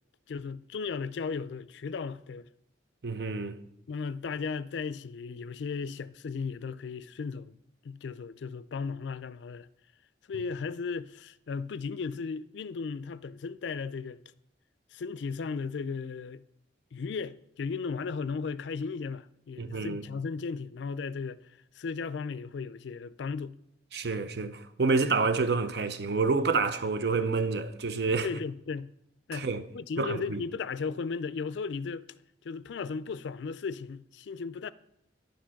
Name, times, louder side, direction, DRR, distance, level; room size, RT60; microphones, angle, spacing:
voice 1, 0.3-2.5 3.9-7.6 7.8-9.7 10.3-14.2 14.9-16.4 16.9-23.6 28.2-28.9 29.3-29.5 29.7-32.1 32.4-34.7, left 5 dB, 75° left, 0.4 m, -36 dB
voice 2, 3.0-3.6 19.6-20.0 23.9-28.3 29.3-29.6 30.0-30.4, right 4 dB, 60° right, 0.6 m, -28 dB
10.5 x 5.1 x 5.9 m
head